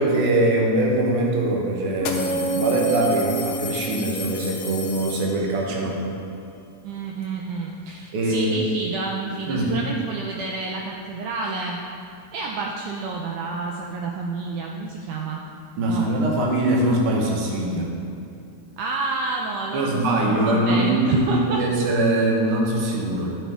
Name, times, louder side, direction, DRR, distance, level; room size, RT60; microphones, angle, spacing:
voice 1, 0.0-6.0 8.1-8.6 9.5-9.7 15.8-17.9 19.7-23.4, right 1 dB, 70° right, -2 dB, 1.3 m, -22 dB
sound 1, 0.9-1.0 1.9-5.7, left 5 dB, 75° left, 2.1 m, -34 dB
Bass guitar, 2.0-5.7, right 3 dB, 45° right, 2.7 m, -30 dB
voice 2, 6.8-11.8 12.3-15.4 15.9-16.1 18.8-21.6, right 4 dB, 90° right, -1 dB, 1.7 m, -29 dB
13.0 x 5.9 x 3.7 m, 2.5 s
omnidirectional pair, 4.3 m